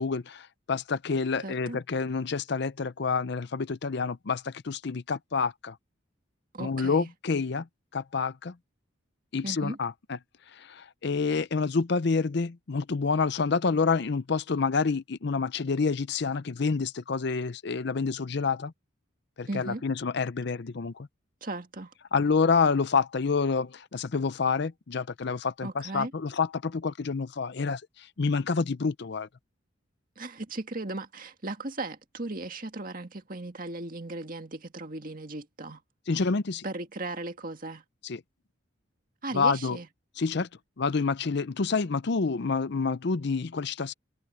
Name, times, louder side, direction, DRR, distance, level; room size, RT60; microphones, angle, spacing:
voice 1, 0.0-5.8 6.6-7.7 7.9-8.5 9.3-10.2 10.5-18.7 19.4-21.1 22.1-29.3 36.1-36.6 38.0-38.2 39.3-39.8 40.2-40.5 40.8-43.9, left 4 dB, 55° left, 0.6 m, -28 dB
voice 2, 1.4-1.8 6.5-7.1 9.4-9.8 19.5-19.8 21.4-21.9 25.6-26.1 30.2-35.8 36.6-37.8 39.2-39.9, right 2 dB, 45° right, 2.0 m, -37 dB
head